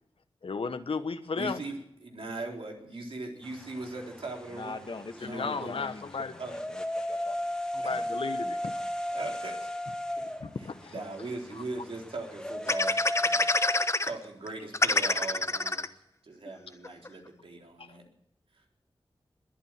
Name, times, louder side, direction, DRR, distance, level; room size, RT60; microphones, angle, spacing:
voice 1, 0.4-1.6 5.2-6.3 7.7-8.7 10.4-10.9 11.5-11.6, left 4 dB, 80° left, 10 dB, 1.2 m, -34 dB
voice 2, 1.4-4.8 5.1-5.7 6.4-6.6 7.8-7.9 9.1-9.7 10.9-13.5 14.0-15.9 16.2-18.0, right 2 dB, 75° right, 0 dB, 3.7 m, -39 dB
sound 1, 3.4-13.9, left 1 dB, 10° left, 1.5 m, -36 dB
voice 3, 4.5-7.4 7.9-8.1, left 3 dB, 60° left, 7 dB, 1.7 m, -42 dB
sound 2, 12.7-14.1 14.5-14.6 14.7-15.9 16.5-16.6 16.8-17.1, left 2 dB, 30° left, 0.9 m, -26 dB
21.5 x 9.0 x 7.5 m, 0.77 s
wide cardioid pair, 80°, 9 cm